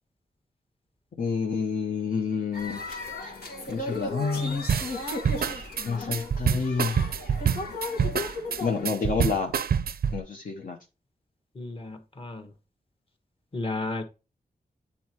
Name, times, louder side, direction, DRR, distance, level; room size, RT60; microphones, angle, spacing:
voice 1, 1.2-3.0 3.7-4.7 5.4-7.0 8.6-9.5 10.1-10.8, left 5 dB, 60° left, 0.9 m, -29 dB
sound 1, 2.5-8.9, left 2 dB, 90° left, 1.9 m, -35 dB
sound 2, 4.7-10.2, right 7 dB, 75° right, 0.5 m, -26 dB
voice 2, 11.5-12.5 13.5-14.0, left 2 dB, 35° left, 1.3 m, -33 dB
9.2 x 4.2 x 3.0 m
wide cardioid pair, 130°, 16 cm